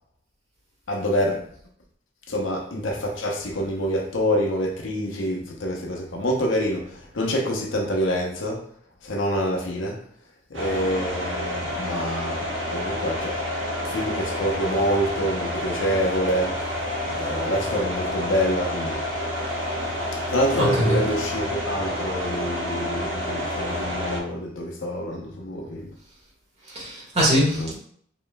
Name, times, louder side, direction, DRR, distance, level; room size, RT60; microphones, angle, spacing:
voice 1, 0.9-1.4 2.3-6.8 7.1-8.6 9.0-10.0 10.5-13.4 13.8-16.6 17.0-19.0 20.3-25.9 27.6-27.7, equal, 80° left, 0.8 m, -26 dB
sound 1, 10.5-24.2, left 1 dB, 85° right, 1.1 m, -29 dB
voice 2, 20.6-21.1 26.7-27.7, equal, 35° right, 1.6 m, -22 dB
5.2 x 3.0 x 2.3 m
head